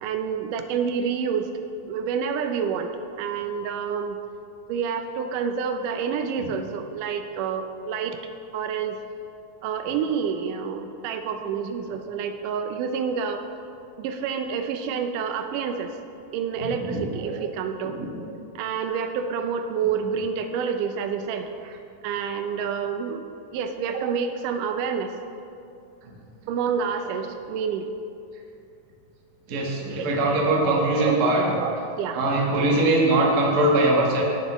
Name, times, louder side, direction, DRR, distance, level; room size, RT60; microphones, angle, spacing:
voice 1, 0.0-1.5 1.9-2.9 3.2-4.2 4.7-8.2 8.5-9.0 9.6-13.4 14.0-15.9 16.3-21.8 22.0-23.3 23.5-25.1 26.5-27.9 29.8-30.4 30.7-32.2 32.6-32.7 33.5-33.6, right 6 dB, 80° right, 6 dB, 2.1 m, -28 dB
voice 2, 29.5-31.4 32.1-34.2, right 2 dB, 55° right, -2 dB, 1.1 m, -21 dB
16.5 x 7.1 x 3.0 m, 2.6 s
omnidirectional pair, 3.8 m